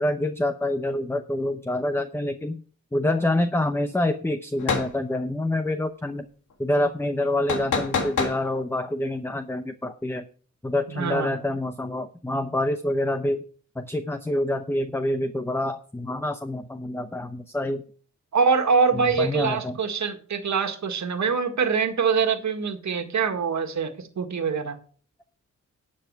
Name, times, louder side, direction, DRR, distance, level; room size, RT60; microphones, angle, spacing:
voice 1, 0.0-2.6 2.9-6.3 6.6-10.2 10.6-13.4 13.8-17.8 18.9-19.8, left 1 dB, 10° left, 8 dB, 0.7 m, -27 dB
sound 1, 4.6-4.9 7.5-8.4, left 5 dB, 90° left, 2.2 m, -25 dB
voice 2, 10.9-11.4 18.3-24.8, right 5 dB, 70° right, 6 dB, 1.9 m, -24 dB
11.5 x 7.9 x 4.7 m, 0.43 s
wide cardioid pair, 95°, 30 cm